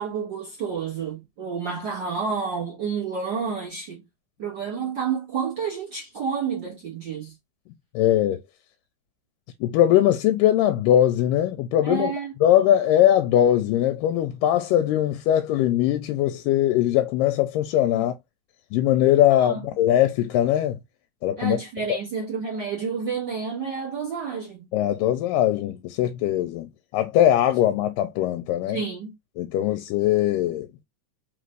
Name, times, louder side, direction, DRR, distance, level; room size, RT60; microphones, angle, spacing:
voice 1, 0.0-4.0 4.4-7.3 11.8-12.3 17.9-18.1 19.4-19.6 21.4-24.7 28.7-29.1, right 6 dB, 55° right, 1.3 m, -30 dB
voice 2, 8.0-8.4 9.6-12.1 12.4-18.1 18.7-20.8 21.2-21.6 24.7-28.8 29.4-30.7, left 12 dB, 90° left, 2.2 m, -21 dB
5.2 x 2.5 x 3.2 m
omnidirectional pair, 3.8 m